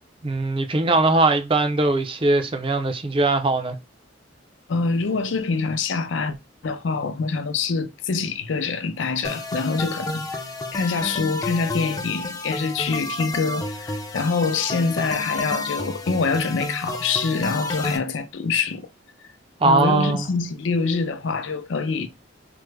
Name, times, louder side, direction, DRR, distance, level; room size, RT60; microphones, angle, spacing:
voice 1, 0.2-3.8 19.6-20.3, right 2 dB, 30° right, 0.5 m, -20 dB
voice 2, 4.7-6.4 6.6-10.4 10.7-18.9 19.6-22.1, left 4 dB, 80° left, 0.5 m, -25 dB
sound 1, 9.2-18.0, left 2 dB, 20° left, 0.5 m, -30 dB
3.3 x 2.0 x 3.2 m
head